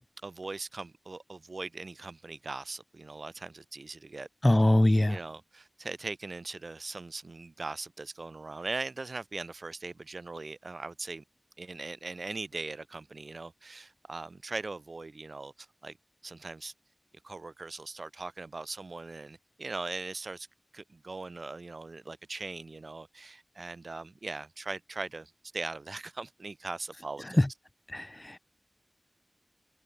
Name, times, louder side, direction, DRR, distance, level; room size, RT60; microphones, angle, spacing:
voice 1, 0.2-4.3 5.1-11.2 11.6-16.0 16.2-16.7 17.2-20.5 20.7-27.4, right 3 dB, 85° right, 6.5 m, -40 dB
voice 2, 4.4-5.2 27.4-27.5 27.9-28.4, left 1 dB, 25° left, 0.4 m, -23 dB
wide cardioid pair, 45°, 0 cm